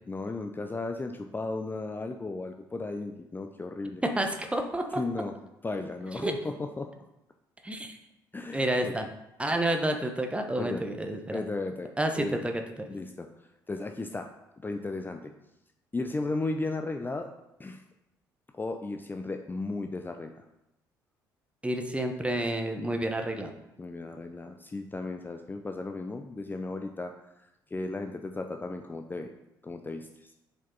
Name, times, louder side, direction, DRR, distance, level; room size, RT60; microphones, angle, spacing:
voice 1, 0.1-4.0 5.0-5.3 5.6-6.9 8.3-9.0 10.6-10.9 11.3-12.5 12.9-14.3 14.6-15.3 15.9-17.3 17.6-17.8 18.5-20.4 23.8-29.3 29.6-30.3, left 3 dB, 20° left, 5 dB, 0.6 m, -35 dB
voice 2, 4.0-5.0 6.2-6.3 7.6-8.0 8.5-9.0 9.4-11.4 12.0-12.9 21.6-23.5, right 1 dB, 10° right, 4 dB, 1.1 m, -29 dB
7.2 x 5.1 x 4.0 m, 0.89 s
figure-of-eight pair, 50°, 11 cm